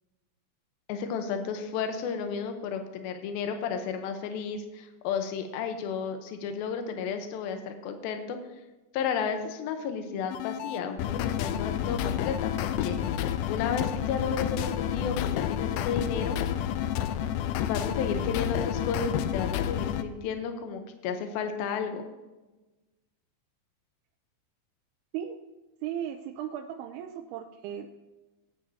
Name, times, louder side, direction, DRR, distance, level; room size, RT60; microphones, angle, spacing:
voice 1, 0.9-8.4 8.9-13.0 13.5-16.4 17.7-22.1, left 6 dB, 75° left, 6 dB, 2.6 m, -33 dB
sound 1, 10.3-20.0, left 10 dB, 90° left, 2.1 m, -30 dB
voice 2, 25.8-27.9, right 10 dB, 80° right, 4 dB, 2.5 m, -36 dB
17.5 x 9.1 x 2.8 m, 1.1 s
omnidirectional pair, 4.8 m